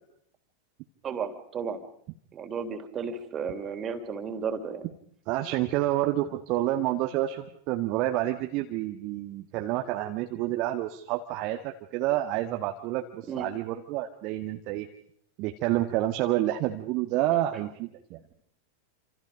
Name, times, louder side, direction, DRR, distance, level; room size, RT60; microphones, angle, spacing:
voice 1, 1.0-1.8 2.3-4.9 13.3-13.5, right 6 dB, 25° right, 8 dB, 3.3 m, -33 dB
voice 2, 5.3-14.9 15.4-18.2, right 14 dB, 40° right, 4 dB, 1.6 m, -29 dB
28.5 x 27.0 x 5.2 m, 0.67 s
figure-of-eight pair, 90°, 0 cm